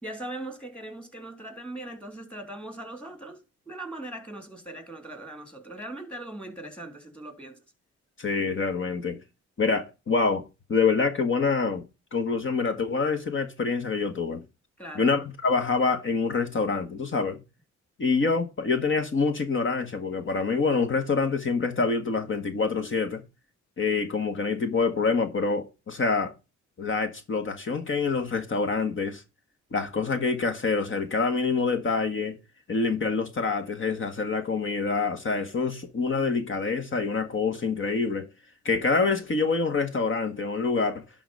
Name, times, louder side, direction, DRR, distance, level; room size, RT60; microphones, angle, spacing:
voice 1, 0.0-7.6 14.8-15.1, right 1 dB, 5° left, 3.3 m, -40 dB
voice 2, 8.2-9.2 9.6-10.4 10.7-11.8 12.1-14.4 14.9-17.4 18.0-23.2 23.8-26.3 26.8-29.2 29.7-32.4 32.7-38.3 38.6-41.0, left 4 dB, 40° left, 1.7 m, -26 dB
11.0 x 4.0 x 5.5 m
cardioid pair, 90°, 30 cm